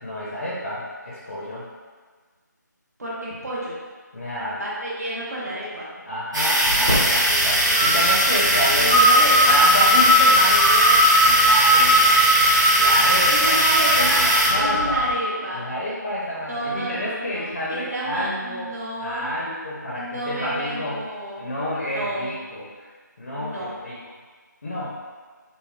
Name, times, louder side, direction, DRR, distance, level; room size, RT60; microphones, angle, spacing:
voice 1, 0.0-1.7 4.1-4.6 6.1-8.9 9.4-12.2 12.8-13.6 13.9-15.0 15.5-18.7 19.0-21.0 21.4-22.9 23.2-24.0 24.6-25.0, equal, 45° left, -7 dB, 0.5 m, -29 dB
voice 2, 3.0-3.8 4.6-5.9 8.8-9.6 13.3-14.2 14.5-15.7 16.5-19.3 19.9-21.4 21.8-22.3 23.3-23.7, right 1 dB, 55° right, -7 dB, 0.8 m, -30 dB
sound 1, 6.3-14.5, right 1 dB, 85° right, 1.4 m, -20 dB
sound 2, 6.7-15.1, equal, 5° right, 0.5 m, -19 dB
3.5 x 2.0 x 2.3 m, 1.5 s
figure-of-eight pair, 165°, 10 cm